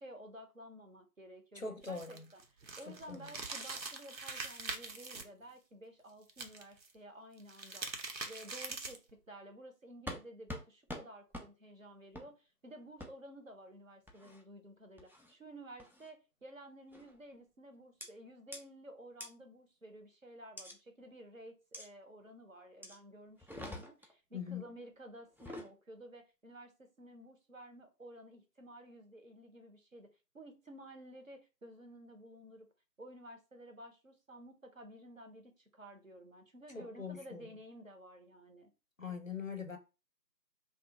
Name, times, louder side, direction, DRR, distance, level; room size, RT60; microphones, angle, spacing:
voice 1, 0.0-2.4 2.8-30.1 30.3-32.7 33.0-38.7, right 1 dB, 55° right, 0.6 m, -53 dB
voice 2, 1.5-2.3 2.9-3.3 24.3-24.6 36.7-37.5 39.0-39.8, left 5 dB, 55° left, 0.5 m, -42 dB
sound 1, 1.8-5.2 6.3-6.9 7.4-9.1, right 3 dB, 85° right, 0.8 m, -43 dB
sound 2, 10.1-10.2 10.5-10.6 10.9-11.0 11.3-11.5 12.1-12.3 13.0-13.1 14.1-14.4 15.0-15.3 15.8-16.1 16.9-17.2 18.0-18.1 18.5-18.6 19.2-19.3 20.6-20.7 21.7-21.9 22.8-23.0 23.4-24.1 25.3-25.7, left 1 dB, 5° right, 0.3 m, -45 dB
2.7 x 2.3 x 3.4 m
figure-of-eight pair, 165°, 50 cm